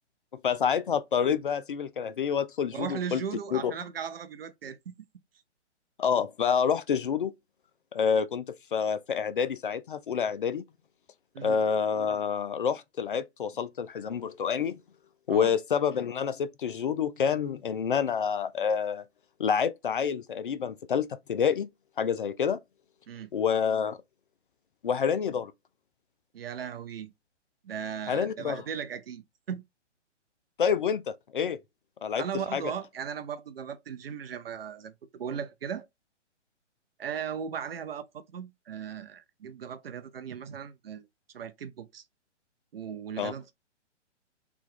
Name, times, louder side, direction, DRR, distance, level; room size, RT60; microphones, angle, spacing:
voice 1, 0.4-3.2 3.5-3.7 6.0-7.3 7.9-10.6 11.4-14.8 15.3-19.0 19.4-21.7 22.0-22.6 23.3-24.0 24.8-25.5 28.1-28.6 30.6-31.6 32.0-32.2 32.5-32.6 43.2-43.3, left 7 dB, 45° left, 0.4 m, -28 dB
voice 2, 2.7-4.9 11.3-11.6 15.3-15.5 23.1-23.3 26.3-27.1 27.6-29.6 32.2-35.8 37.0-41.1 41.3-42.0 42.7-43.5, right 8 dB, 55° right, 0.6 m, -37 dB
3.4 x 2.9 x 3.6 m
figure-of-eight pair, 135°, 36 cm